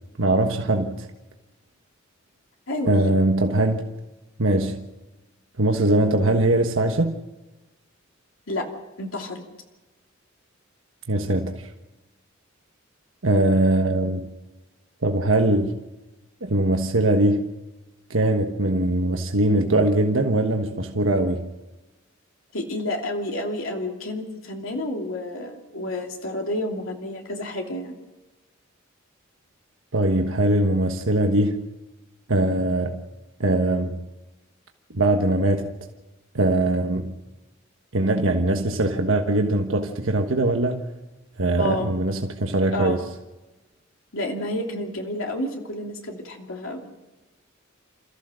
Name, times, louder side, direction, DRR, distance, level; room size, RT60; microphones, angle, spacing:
voice 1, 0.2-1.1 2.9-3.9 4.4-4.9 5.6-7.1 11.1-11.7 13.2-14.3 15.0-15.8 16.4-17.5 18.1-21.5 29.9-31.6 32.3-33.0 33.4-34.0 34.9-35.7 36.3-37.2 37.9-40.9 41.4-43.0, right 1 dB, 75° right, 1.4 m, -21 dB
voice 2, 2.7-3.0 8.5-8.6 9.0-9.4 22.5-28.0 41.6-41.9 42.7-43.0 44.1-46.9, left 1 dB, 85° left, 2.8 m, -30 dB
29.0 x 14.5 x 6.4 m
head